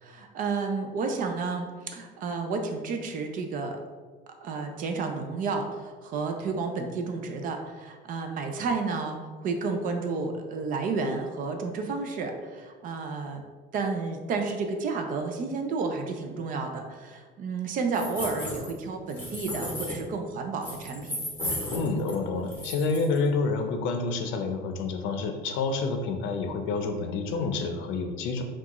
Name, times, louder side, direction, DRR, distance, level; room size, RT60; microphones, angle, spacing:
voice 1, 0.0-3.8 4.4-13.4 13.7-21.2, right 4 dB, 40° right, 4 dB, 0.5 m, -31 dB
sound 1, 17.9-18.8 19.1-20.0 20.6-22.2 22.5-23.2, left 1 dB, 10° left, 1.1 m, -34 dB
voice 2, 21.7-28.4, left 4 dB, 70° left, 5 dB, 0.6 m, -28 dB
5.9 x 2.4 x 2.9 m, 1.5 s
cardioid pair, 170°, 20 cm